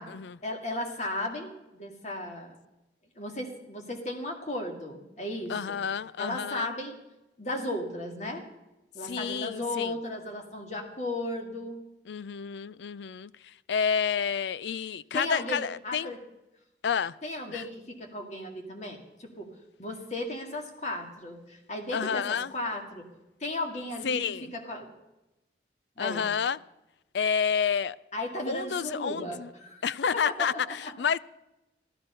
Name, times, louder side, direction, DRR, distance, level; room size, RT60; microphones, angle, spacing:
voice 1, 0.4-2.6 3.2-5.8 6.2-7.0 7.4-8.5 8.9-11.8 15.1-16.2 17.2-19.5 19.8-23.1 23.4-24.9 26.0-26.3 28.1-29.8 30.3-30.9, left 1 dB, 40° left, 1.9 m, -35 dB
voice 2, 5.5-6.7 9.0-9.9 12.1-16.1 16.8-17.2 17.5-17.6 21.9-22.5 24.0-24.5 26.0-26.6 27.1-28.0 28.5-29.5 29.8-31.2, left 7 dB, 75° left, 0.4 m, -30 dB
14.0 x 13.0 x 5.5 m
head